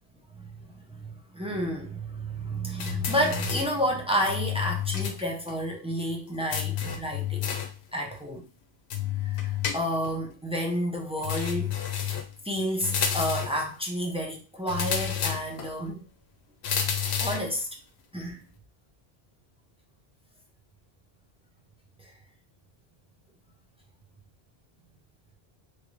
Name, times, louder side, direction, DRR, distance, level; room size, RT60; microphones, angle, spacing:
voice 1, 0.4-7.5 7.9-8.5 9.2-11.7 12.4-16.1 17.2-17.7 18.1-18.4 22.0-22.1, equal, 10° right, 0.4 m, -30 dB
sound 1, 2.8-3.8 4.3-5.2 5.5-5.6 6.5-7.8 8.9-10.2 11.2-12.3 12.8-13.6 14.7-15.7 16.6-17.5, left 9 dB, 80° left, 0.8 m, -30 dB
3.1 x 2.6 x 3.0 m
omnidirectional pair, 1.1 m